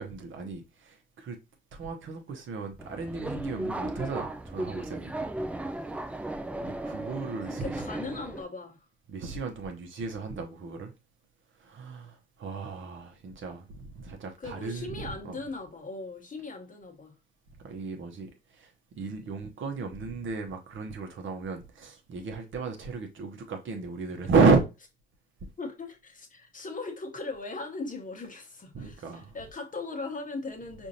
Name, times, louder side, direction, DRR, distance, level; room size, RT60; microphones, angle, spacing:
voice 1, 0.0-1.4 1.7-5.3 6.6-7.8 9.1-10.9 11.6-15.4 17.6-18.3 18.6-18.7 19.0-24.6 28.7-29.4, right 4 dB, 40° right, 0.9 m, -32 dB
Subway metro underground, 2.8-8.4, right 1 dB, 5° right, 0.3 m, -36 dB
voice 2, 7.4-8.8 14.4-17.2 25.6-30.9, left 3 dB, 25° left, 1.1 m, -39 dB
4.9 x 2.6 x 2.8 m
hypercardioid pair, 60°, 30 cm